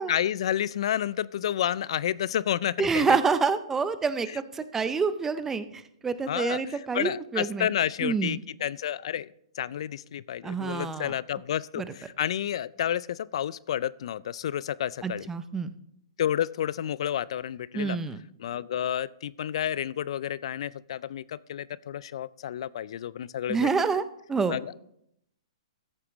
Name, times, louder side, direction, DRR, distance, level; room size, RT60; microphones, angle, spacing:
voice 1, 0.0-3.2 4.3-4.4 6.3-9.3 9.6-15.3 16.2-18.0 18.4-23.7 24.5-24.8, left 10 dB, 60° left, 21 dB, 0.4 m, -30 dB
voice 2, 2.8-5.7 6.0-7.7 8.0-8.4 10.4-11.1 11.8-11.9 15.0-15.7 17.7-18.2 23.5-24.0 24.3-24.6, right 5 dB, 10° right, 13 dB, 0.5 m, -27 dB
14.0 x 8.3 x 3.1 m, 0.75 s
hypercardioid pair, 140°, 3 cm